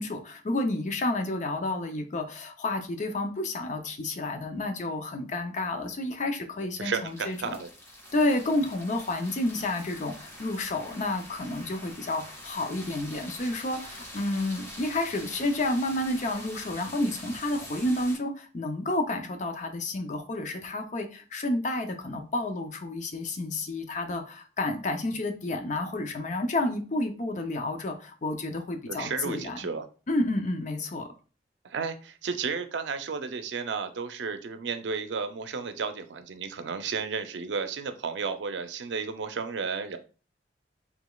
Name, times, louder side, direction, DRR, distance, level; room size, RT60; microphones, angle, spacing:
voice 1, 0.0-7.6 8.1-29.6 30.1-31.1, left 2 dB, 45° left, 5 dB, 0.6 m, -30 dB
sound 1, 6.7-18.2, left 1 dB, 20° left, 2.0 m, -45 dB
voice 2, 6.8-7.7 28.9-29.9 31.6-40.0, right 5 dB, 80° right, 9 dB, 0.5 m, -33 dB
5.0 x 3.4 x 2.3 m, 0.37 s
head